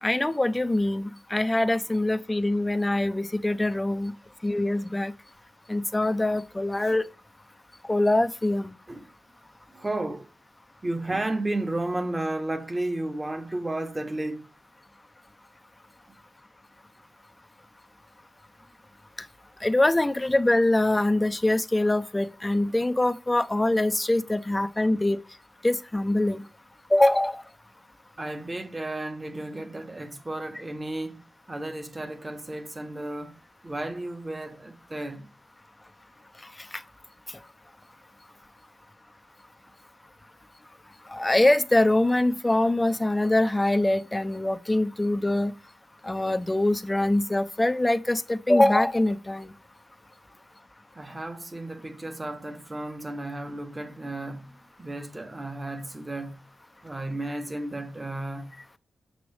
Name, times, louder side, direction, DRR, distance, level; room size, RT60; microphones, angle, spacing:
voice 1, 0.0-4.1 4.4-5.1 5.7-7.0 7.9-8.7 19.6-25.2 25.6-26.4 26.9-27.4 41.1-45.5 46.0-49.5, left 1 dB, 20° left, 0.7 m, -23 dB
voice 2, 9.7-10.3 10.8-14.5 28.2-33.4 33.6-35.3 50.9-56.4 56.8-58.5, right 2 dB, 25° right, 1.2 m, -33 dB
7.9 x 5.9 x 3.3 m
cardioid pair, 55°, 0 cm